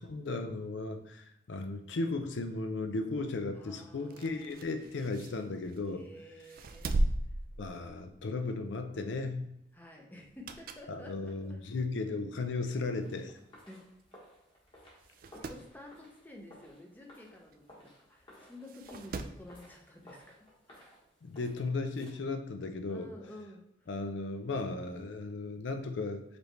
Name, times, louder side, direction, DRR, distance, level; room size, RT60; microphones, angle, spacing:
voice 1, 0.0-6.0 7.6-9.5 10.9-13.3 21.2-23.1 23.9-26.2, left 3 dB, 75° left, 6 dB, 0.5 m, -36 dB
voice 2, 3.5-4.8 5.9-7.0 9.7-11.8 13.7-13.9 15.3-21.0 22.9-23.9, left 1 dB, 10° left, 1 dB, 0.6 m, -52 dB
sound 1, 4.0-5.9 6.4-8.3 8.6-8.9 10.1-11.0 11.4-11.5 12.4-12.5 12.8-12.9 13.0-13.1 14.0-14.2 14.5-14.6 15.0-15.7 17.5-17.6 18.6-19.5 20.8-20.9, right 1 dB, 50° right, 0.3 m, -37 dB
sound 2, 13.0-22.1, equal, 25° left, 1.2 m, -58 dB
5.0 x 3.2 x 3.1 m, 0.82 s
head